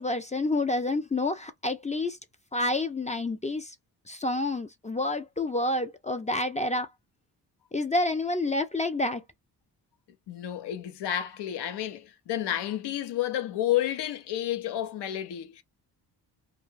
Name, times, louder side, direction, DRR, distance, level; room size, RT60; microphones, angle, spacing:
voice 1, 0.0-2.2 2.5-3.7 4.1-6.9 7.7-9.2, left 2 dB, 20° left, 0.4 m, -28 dB
voice 2, 10.3-15.6, left 12 dB, 75° left, 0.6 m, -30 dB
2.3 x 2.2 x 3.1 m
cardioid pair, 90°, 41 cm